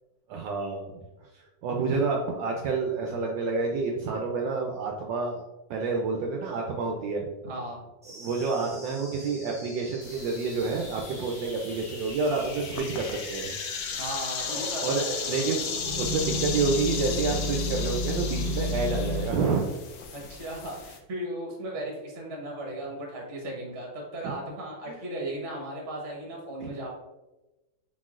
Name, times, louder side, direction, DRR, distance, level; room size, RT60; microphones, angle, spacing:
voice 1, 0.3-1.0 1.3-5.4 5.7-7.3 8.2-13.5 14.5-19.6 24.2-24.3 24.9-25.0 26.6-26.7, right 4 dB, 75° right, 1 dB, 1.2 m, -29 dB
voice 2, 7.4-7.8 14.0-14.8 15.1-15.2 20.1-26.9, right 1 dB, 40° right, -1 dB, 1.1 m, -36 dB
sound 1, 8.0-19.0, equal, 5° right, 0.8 m, -45 dB
sound 2, 10.0-21.0, left 6 dB, 75° left, 0.8 m, -36 dB
sound 3, 15.7-19.4, left 1 dB, 30° left, 0.9 m, -31 dB
4.4 x 4.0 x 2.4 m, 1.1 s
omnidirectional pair, 2.2 m